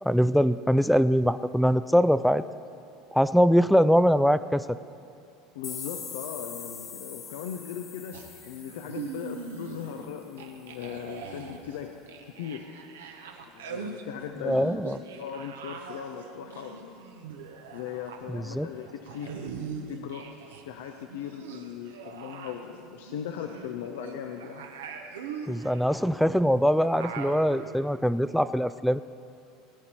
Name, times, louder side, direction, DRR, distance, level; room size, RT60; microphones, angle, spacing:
voice 1, 0.0-2.4 3.1-4.6 14.4-15.0 18.3-18.7 25.5-29.0, equal, ahead, 14 dB, 0.3 m, -22 dB
voice 2, 5.5-12.0 12.2-12.7 13.5-14.8 15.2-17.0 17.7-19.6 19.9-20.3 20.7-24.7, left 8 dB, 80° left, 5 dB, 0.6 m, -38 dB
sound 1, 5.6-10.3, left 6 dB, 45° left, 2.1 m, -43 dB
sound 2, 8.1-10.1 10.4-20.6 20.9-27.8, right 5 dB, 90° right, 0.9 m, -42 dB
18.0 x 8.8 x 4.4 m, 2.6 s
hypercardioid pair, 90°, 0 cm